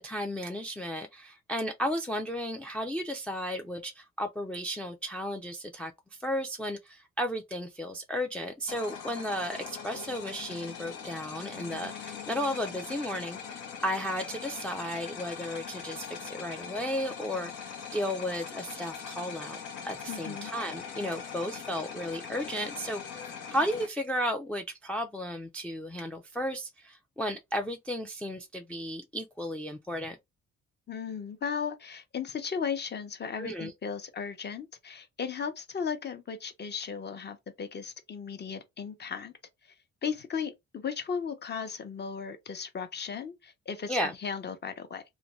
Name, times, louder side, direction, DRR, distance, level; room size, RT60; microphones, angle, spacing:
voice 1, 0.0-5.9 6.2-30.2 33.4-33.7 43.9-44.1, equal, 5° left, 0.3 m, -34 dB
sound 1, 8.7-23.9, left 6 dB, 80° left, 0.9 m, -41 dB
voice 2, 20.1-20.5 30.9-39.3 39.6-39.7 40.0-45.0, left 6 dB, 35° left, 0.7 m, -36 dB
2.5 x 2.2 x 3.0 m
cardioid pair, 90°, 30 cm